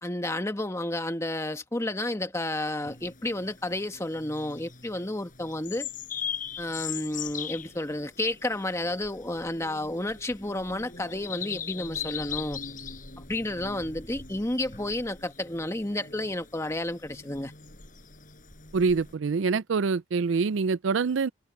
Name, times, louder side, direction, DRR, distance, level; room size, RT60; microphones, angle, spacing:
voice 1, 0.0-5.9 6.6-12.6 13.3-17.5, left 1 dB, 15° left, 1.3 m, -31 dB
sound 1, 2.8-19.1, left 7 dB, 40° left, 7.7 m, -40 dB
voice 2, 18.7-21.3, right 4 dB, 65° right, 0.4 m, -25 dB
head